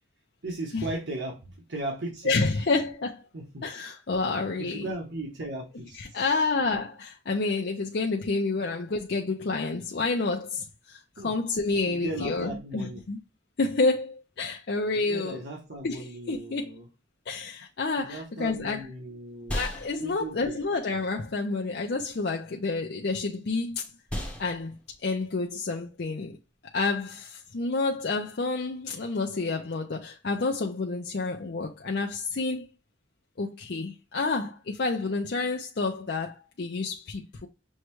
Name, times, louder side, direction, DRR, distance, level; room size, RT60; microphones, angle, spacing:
voice 1, 0.4-2.6 3.3-3.6 4.6-6.3 8.5-8.7 11.2-11.4 11.8-13.0 14.9-16.9 18.0-19.6 20.0-20.6, right 2 dB, 80° right, 1.2 m, -37 dB
voice 2, 2.2-3.2 3.6-4.9 6.0-13.2 13.6-15.4 15.8-16.7 17.3-18.9 19.5-23.9 24.4-26.4 26.7-32.7 33.4-37.5, left 3 dB, 60° left, 0.5 m, -29 dB
sound 1, 18.4-27.7, equal, 5° left, 0.8 m, -41 dB
6.3 x 2.2 x 3.0 m
head